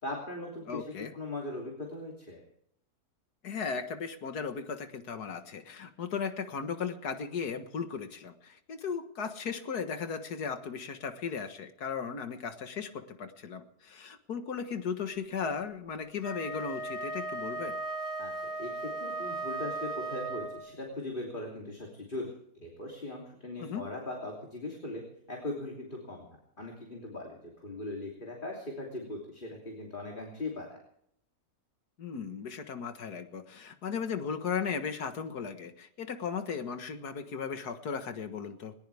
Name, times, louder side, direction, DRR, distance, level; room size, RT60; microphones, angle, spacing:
voice 1, 0.0-0.8 1.1-2.4 18.2-18.3 18.6-22.3 22.6-25.0 25.3-26.2 26.6-30.8, left 2 dB, 30° left, -1 dB, 3.3 m, -39 dB
voice 2, 0.7-1.1 3.4-17.8 23.6-23.8 32.0-38.7, left 6 dB, 75° left, 8 dB, 2.0 m, -36 dB
Wind instrument woodwind instrument, 16.1-20.8, right 2 dB, 65° right, 2.5 m, -37 dB
20.5 x 20.0 x 3.5 m, 0.70 s
omnidirectional pair, 1.7 m